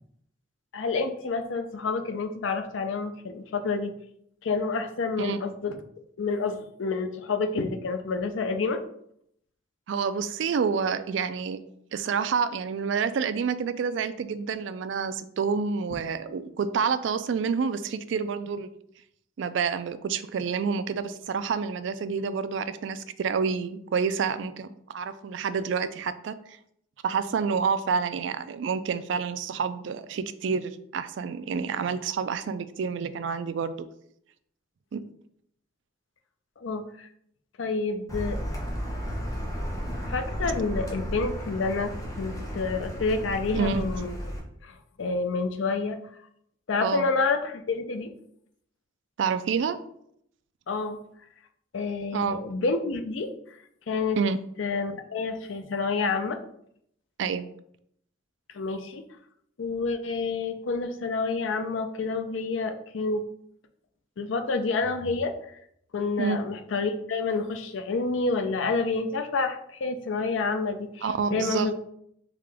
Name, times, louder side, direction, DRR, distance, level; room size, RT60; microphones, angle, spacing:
voice 1, 0.7-3.9 4.4-5.8 6.2-8.8 36.6-37.1 37.6-38.4 40.1-44.2 44.6-46.0 46.7-48.1 50.7-51.0 51.7-53.3 53.9-54.2 54.6-56.4 58.5-59.0 59.6-63.2 64.2-65.3 65.9-71.1 71.3-71.7, left 4 dB, 80° left, 8 dB, 0.5 m, -28 dB
voice 2, 9.9-11.6 11.9-18.7 19.4-26.6 27.0-33.8 34.9-35.0 43.5-43.9 46.8-47.1 49.2-49.8 52.1-52.4 54.2-54.4 57.2-57.4 66.2-66.4 71.0-71.7, right 5 dB, 70° right, 12 dB, 0.3 m, -28 dB
Car, 38.1-44.4, equal, 20° left, 0.9 m, -33 dB
3.7 x 3.7 x 3.3 m, 0.71 s
head